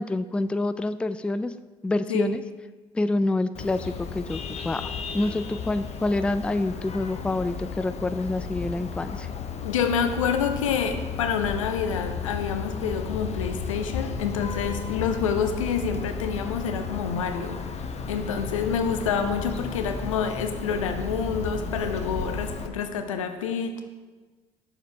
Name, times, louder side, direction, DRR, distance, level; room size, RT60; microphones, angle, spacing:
voice 1, 0.0-1.5 1.8-2.4 2.9-9.3, left 2 dB, 5° left, 13 dB, 0.3 m, -27 dB
Vehicle horn car horn honking, 3.5-22.7, left 5 dB, 40° left, 0.7 m, -34 dB
voice 2, 9.6-17.6 18.1-23.8, left 6 dB, 85° left, 7 dB, 0.5 m, -27 dB
7.6 x 6.7 x 3.3 m, 1.3 s
hypercardioid pair, 50°, 16 cm